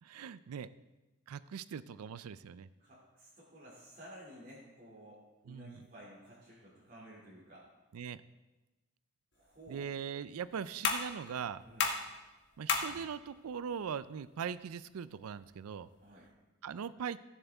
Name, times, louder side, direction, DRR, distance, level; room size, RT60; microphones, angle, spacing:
voice 1, 0.0-0.7 1.3-2.7 5.5-5.8 7.9-8.2 9.7-11.6 12.6-15.9 16.6-17.2, right 7 dB, 90° right, 16 dB, 0.4 m, -41 dB
voice 2, 2.8-7.6 9.3-9.9 11.6-11.9 16.0-16.3, equal, 40° right, -9 dB, 2.4 m, -54 dB
sound 1, 9.3-16.3, left 5 dB, 50° left, 1.2 m, -39 dB
16.5 x 7.3 x 3.5 m, 1.1 s
head